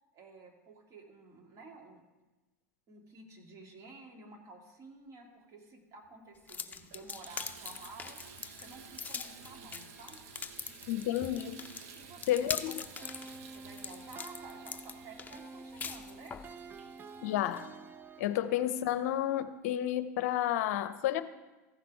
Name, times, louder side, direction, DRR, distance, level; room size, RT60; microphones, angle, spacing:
voice 1, 0.1-2.0 2.9-8.2 8.6-10.2 11.9-13.2 13.5-16.4 18.4-18.5, right 3 dB, 40° right, 2 dB, 2.1 m, -52 dB
Water tap faucet / Bathtub (filling or washing), 6.0-6.1 6.6-19.0 19.7-19.8 20.3-20.4, right 6 dB, 70° right, 1.0 m, -54 dB
sound 1, 6.5-16.5, left 5 dB, 20° left, 0.6 m, -42 dB
voice 2, 10.9-11.6 12.3-12.7 17.2-17.7 18.2-21.2, left 12 dB, 65° left, 12 dB, 0.6 m, -31 dB
sound 2, 13.0-18.8, right 4 dB, 25° right, 0.6 m, -49 dB
14.5 x 5.9 x 4.7 m, 1.1 s
hypercardioid pair, 95°, 9 cm